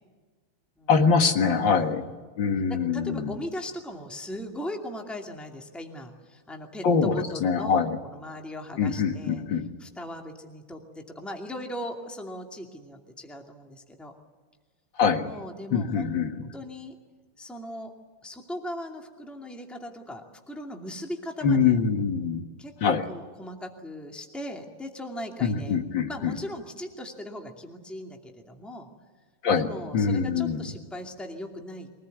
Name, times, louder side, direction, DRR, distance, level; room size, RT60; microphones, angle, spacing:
voice 1, 0.9-2.0 2.4-3.3 6.8-8.0 8.8-9.7 15.0-15.3 15.7-16.4 21.4-22.4 22.8-23.0 25.4-26.4 29.4-29.7 29.9-30.7, left 5 dB, 60° left, 6 dB, 2.4 m, -24 dB
voice 2, 1.7-2.2 2.7-9.4 9.8-14.1 15.2-16.1 16.5-17.0 17.4-17.9 18.2-21.8 22.6-25.8 26.1-28.9 29.5-32.0, left 1 dB, ahead, 2 dB, 2.4 m, -39 dB
24.0 x 19.5 x 9.4 m, 1.4 s
omnidirectional pair, 2.3 m